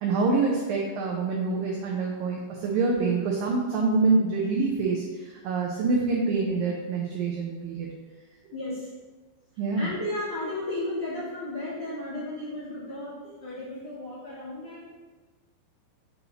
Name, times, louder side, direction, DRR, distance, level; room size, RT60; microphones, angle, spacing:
voice 1, 0.0-7.9 9.6-9.9, right 3 dB, 90° right, -2 dB, 2.0 m, -26 dB
voice 2, 8.5-8.9 9.7-14.9, left 1 dB, 50° left, -10 dB, 1.3 m, -34 dB
7.2 x 5.5 x 2.9 m, 1.3 s
omnidirectional pair, 5.0 m